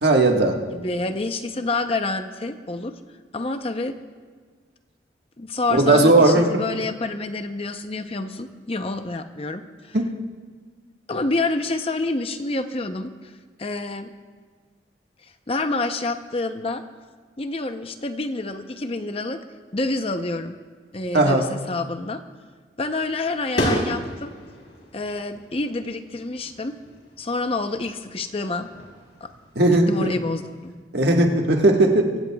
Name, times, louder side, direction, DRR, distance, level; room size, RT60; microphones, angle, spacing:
voice 1, 0.0-0.6 5.7-6.4 9.9-10.0 21.1-21.5 29.5-30.1 30.9-32.2, right 2 dB, 65° right, 1 dB, 1.5 m, -17 dB
voice 2, 0.7-3.0 3.3-4.0 5.4-10.0 11.1-13.3 13.6-14.1 15.5-16.8 17.4-19.4 19.7-20.6 20.9-22.2 22.8-24.3 24.9-26.8 27.2-28.7 29.2-29.3 29.7-30.7, left 2 dB, 30° left, 8 dB, 0.7 m, -28 dB
sound 1, 22.8-30.8, equal, 65° left, 3.5 m, -33 dB
24.0 x 16.0 x 2.3 m, 1.5 s
head